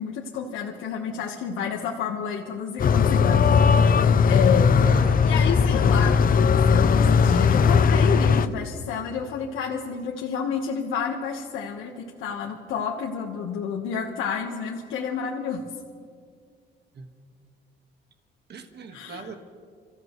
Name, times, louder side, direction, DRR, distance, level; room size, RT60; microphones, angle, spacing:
voice 1, 0.0-4.0 4.3-4.9 5.2-15.6 18.9-19.2, left 6 dB, 85° left, -1 dB, 1.3 m, -30 dB
sound 1, 2.8-8.5, left 6 dB, 45° left, 0.6 m, -18 dB
voice 2, 4.9-5.3 16.9-17.1 18.5-19.3, right 5 dB, 60° right, 5 dB, 1.6 m, -40 dB
27.0 x 14.5 x 3.1 m, 2.1 s
cardioid pair, 90°, 20 cm